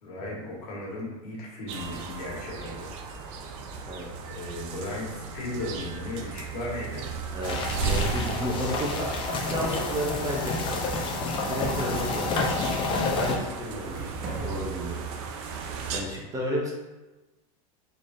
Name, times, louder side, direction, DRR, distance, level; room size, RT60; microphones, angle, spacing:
voice 1, 0.0-2.9 4.3-7.0 11.4-11.6 14.2-14.5, left 2 dB, 85° left, -4 dB, 1.4 m, -36 dB
sound 1, 1.7-16.0, right 6 dB, 55° right, 0.5 m, -36 dB
sound 2, 7.4-13.4, left 3 dB, 25° left, 0.5 m, -29 dB
voice 2, 7.8-10.8 11.5-12.5 13.1-14.1 14.4-15.0 15.9-16.7, equal, 15° right, -2 dB, 0.7 m, -32 dB
sound 3, 9.4-9.9 10.5-10.9 11.2-11.3 11.6-13.2 13.8-14.6, right 2 dB, 40° right, 1.2 m, -39 dB
3.9 x 3.3 x 2.6 m, 1.1 s
supercardioid pair, 140°, 20 cm